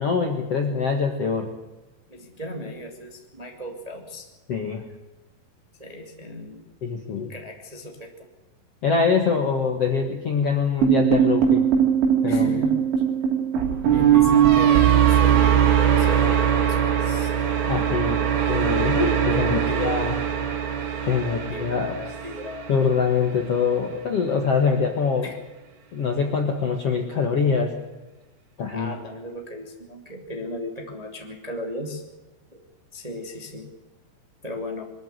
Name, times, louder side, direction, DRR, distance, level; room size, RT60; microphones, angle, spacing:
voice 1, 0.0-1.5 4.5-4.9 6.8-7.3 8.8-11.7 12.2-12.6 17.7-18.2 18.5-20.1 21.1-21.9 22.7-25.3 25.9-27.7 28.6-28.9, left 5 dB, 55° left, 3 dB, 1.9 m, -24 dB
voice 2, 2.1-4.3 5.8-6.6 7.3-8.1 12.3-12.8 13.9-17.3 18.9-20.1 21.0-22.7 25.2-25.4 28.7-32.0 32.5-32.6 32.9-33.7 34.4-34.9, equal, 15° right, 2 dB, 1.6 m, -36 dB
sound 1, 10.8-23.0, right 9 dB, 85° right, 5.3 m, -20 dB
23.0 x 13.5 x 9.5 m, 1.1 s
omnidirectional pair, 4.9 m